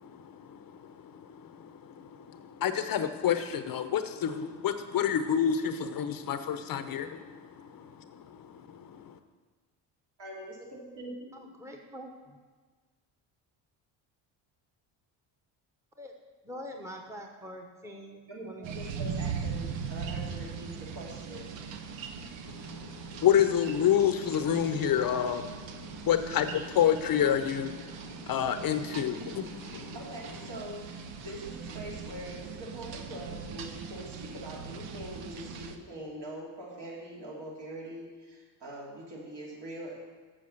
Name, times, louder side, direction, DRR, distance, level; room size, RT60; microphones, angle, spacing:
voice 1, 0.0-9.2 22.5-25.5 25.8-30.0, left 9 dB, 50° left, 9 dB, 0.7 m, -29 dB
voice 2, 10.2-11.6 18.3-21.6 28.8-29.4 29.9-39.9, right 1 dB, 60° right, -4 dB, 3.0 m, -43 dB
voice 3, 11.3-12.4 16.0-16.1 16.4-18.8, equal, 5° right, 2 dB, 1.0 m, -44 dB
sound 1, 18.6-35.8, right 6 dB, 80° right, 0.9 m, -40 dB
7.4 x 7.1 x 6.4 m, 1.4 s
cardioid pair, 90°, 44 cm